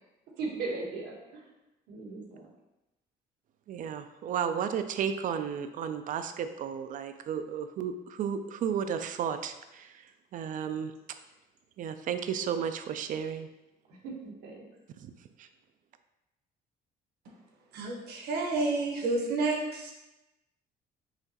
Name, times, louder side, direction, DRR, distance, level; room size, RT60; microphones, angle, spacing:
voice 1, 0.4-1.4 1.9-2.5 13.9-14.6, right 3 dB, 90° right, -3 dB, 1.3 m, -38 dB
voice 2, 3.7-10.1 10.3-10.9 11.8-13.5 15.0-15.1 15.4-15.5, right 8 dB, 50° right, 9 dB, 0.4 m, -33 dB
voice 3, 17.7-19.9, right 3 dB, 70° right, 0 dB, 1.1 m, -30 dB
5.6 x 2.9 x 2.9 m, 0.97 s
cardioid pair, 110°, 17 cm